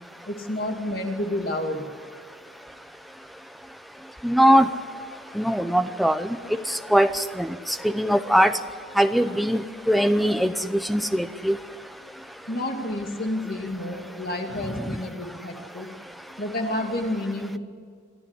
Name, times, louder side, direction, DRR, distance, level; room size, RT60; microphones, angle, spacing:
voice 1, 0.2-1.9 12.5-15.9 16.4-17.6, left 1 dB, 45° left, 3 dB, 2.4 m, -29 dB
voice 2, 4.2-4.7 5.4-6.3 6.7-8.5 9.0-11.6, equal, ahead, 10 dB, 0.7 m, -21 dB
28.5 x 11.5 x 9.9 m, 2.1 s
head